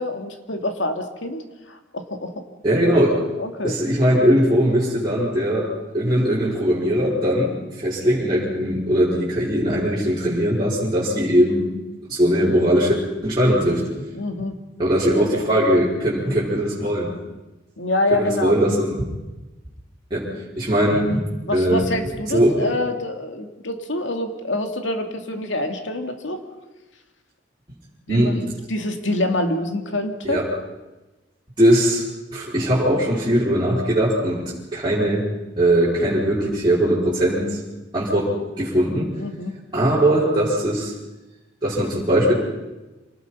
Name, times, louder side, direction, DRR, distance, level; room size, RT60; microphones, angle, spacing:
voice 1, 0.0-2.4 3.4-3.8 14.1-14.5 17.8-18.5 21.5-26.4 28.1-30.4 39.2-39.5, left 1 dB, 75° left, 5 dB, 2.6 m, -26 dB
voice 2, 2.6-3.2 3.6-11.7 12.1-12.9 13.2-14.1 14.8-17.1 18.1-19.0 20.1-20.3 20.5-21.2 21.5-21.8 22.3-22.7 28.1-28.3 30.2-30.5 31.6-35.2 35.6-37.6 37.9-39.1 39.7-40.9 41.6-42.3, equal, 25° right, -9 dB, 5.0 m, -20 dB
27.0 x 19.5 x 5.7 m, 1.1 s
head